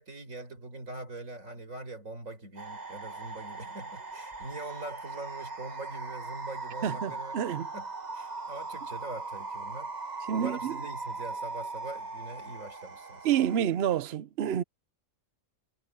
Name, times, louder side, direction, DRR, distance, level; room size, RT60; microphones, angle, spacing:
voice 1, 0.0-7.4 7.7-7.9 8.1-9.9 10.3-13.3, right 2 dB, 80° right, 4.9 m, -42 dB
sound 1, 2.6-13.6, right 3 dB, 35° right, 1.5 m, -39 dB
voice 2, 6.8-7.7 10.3-10.8 13.2-14.6, right 10 dB, 55° right, 0.9 m, -28 dB
omnidirectional pair, 1.4 m